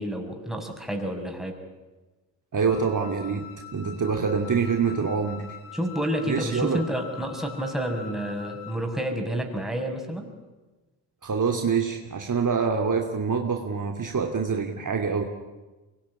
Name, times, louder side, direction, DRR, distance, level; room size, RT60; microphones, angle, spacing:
voice 1, 0.0-1.6 5.7-10.3, equal, ahead, 3 dB, 6.5 m, -29 dB
voice 2, 2.5-5.6 6.2-6.8 11.2-15.2, right 5 dB, 40° right, 3 dB, 2.7 m, -26 dB
Wind instrument woodwind instrument, 2.7-8.9, left 7 dB, 90° left, 2.4 m, -44 dB
24.0 x 21.0 x 9.9 m, 1.2 s
supercardioid pair, 55°, 48 cm